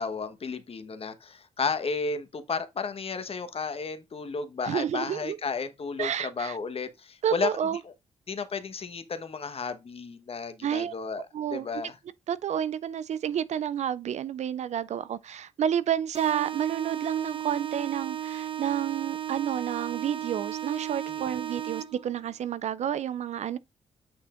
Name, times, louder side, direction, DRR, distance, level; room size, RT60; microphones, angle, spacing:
voice 1, 0.0-7.5 8.3-11.3 11.5-12.0 21.1-21.3, left 5 dB, 45° left, 1.2 m, -33 dB
voice 2, 4.7-5.4 6.0-6.6 7.2-7.8 10.6-10.9 11.3-11.7 12.3-23.6, right 9 dB, 55° right, 0.5 m, -30 dB
sound 1, 16.1-22.1, right 10 dB, 40° right, 1.0 m, -35 dB
8.7 x 5.6 x 2.5 m
hypercardioid pair, 40°, 14 cm